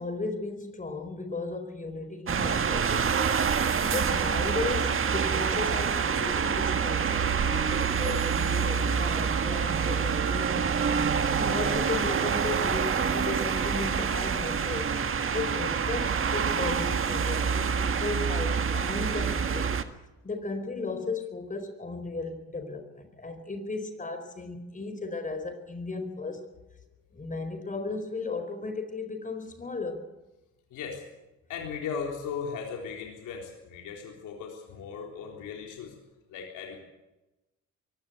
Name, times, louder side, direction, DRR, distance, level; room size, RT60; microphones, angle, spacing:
voice 1, 0.0-3.2 3.4-10.8 11.2-14.9 15.3-19.7 20.2-26.4 27.1-30.0, left 3 dB, 25° left, 8 dB, 4.6 m, -35 dB
sound 1, 2.3-19.8, right 6 dB, 45° right, 1.7 m, -27 dB
voice 2, 30.7-31.0 31.5-35.9 36.3-36.8, left 6 dB, 85° left, 1 dB, 3.9 m, -37 dB
23.0 x 17.5 x 8.0 m, 1.0 s
cardioid pair, 90°, 30 cm